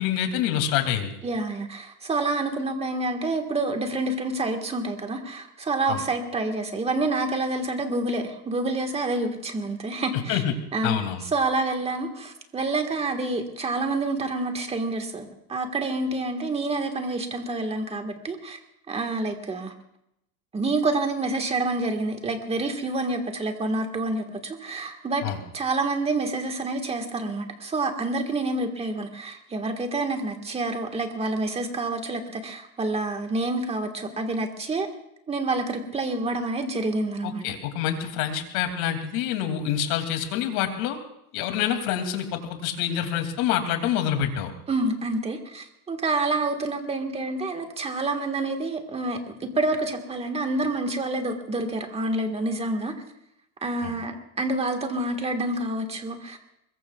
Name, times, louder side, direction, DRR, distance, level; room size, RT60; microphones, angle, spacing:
voice 1, 0.0-1.1 5.9-6.0 10.3-10.5 10.8-11.2 25.2-25.4 37.2-41.0 41.3-44.5 53.8-53.9, left 10 dB, 65° left, 5 dB, 2.8 m, -26 dB
voice 2, 1.2-10.4 10.7-11.0 11.3-18.6 18.9-19.7 20.5-25.2 25.5-34.9 35.3-37.4 44.7-52.9 53.6-56.4, right 2 dB, 15° right, 5 dB, 1.6 m, -28 dB
24.0 x 22.0 x 2.4 m, 0.80 s
supercardioid pair, 150°, 46 cm